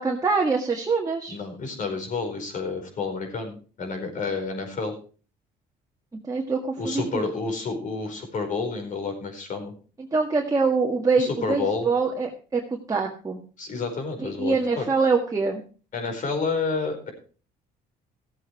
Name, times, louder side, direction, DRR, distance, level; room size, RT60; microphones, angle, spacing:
voice 1, 0.0-1.4 6.3-7.3 10.1-13.4 14.2-15.6, right 4 dB, 20° right, 0 dB, 1.7 m, -24 dB
voice 2, 1.3-4.9 6.8-9.7 11.2-11.9 13.6-14.8 15.9-17.1, left 4 dB, 50° left, 4 dB, 4.7 m, -29 dB
15.5 x 7.8 x 4.6 m, 0.38 s
cardioid pair, 110°, 17 cm